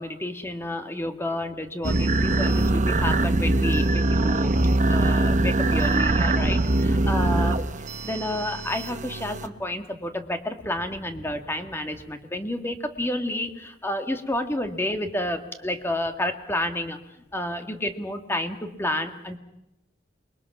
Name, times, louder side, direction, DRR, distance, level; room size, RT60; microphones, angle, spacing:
voice 1, 0.0-4.5 4.9-7.6 8.0-17.0 17.3-19.4, left 1 dB, 15° left, 6 dB, 1.8 m, -30 dB
sound 1, 1.8-9.5, right 2 dB, 45° right, 1.0 m, -22 dB
28.0 x 22.0 x 6.1 m, 0.87 s
head